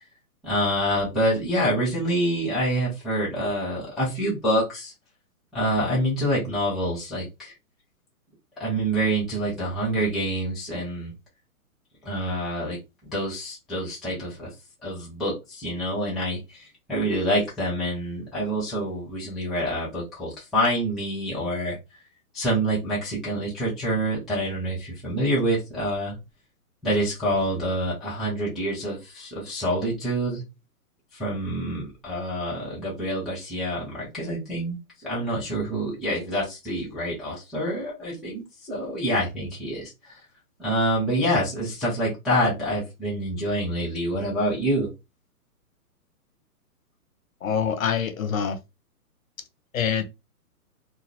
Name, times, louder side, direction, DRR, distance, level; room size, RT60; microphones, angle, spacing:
voice 1, 0.4-4.9 5.5-7.5 8.6-11.1 12.0-12.8 13.1-14.5 14.8-21.8 22.3-26.2 26.8-30.4 31.1-34.8 35.0-40.2 40.6-44.9, equal, ahead, 0.3 m, -26 dB
voice 2, 47.4-48.6 49.7-50.0, left 7 dB, 60° left, 0.6 m, -25 dB
2.2 x 2.0 x 2.8 m
hypercardioid pair, 175°, 46 cm